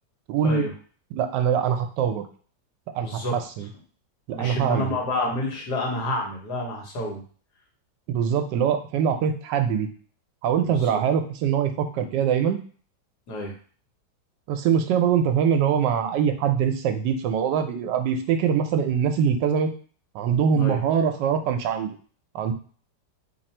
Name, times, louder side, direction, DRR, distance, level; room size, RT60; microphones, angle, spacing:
voice 1, 0.3-0.7 1.1-2.2 2.9-3.7 4.3-5.0 8.1-9.9 10.4-12.6 14.5-19.7 20.1-21.9 22.3-22.5, right 7 dB, 80° right, 6 dB, 1.2 m, -23 dB
voice 2, 3.0-3.4 4.3-7.2 10.6-11.0 13.3-13.5 20.5-20.8, left 1 dB, 65° left, 0 dB, 1.6 m, -29 dB
3.1 x 2.5 x 4.2 m, 0.42 s
omnidirectional pair, 1.9 m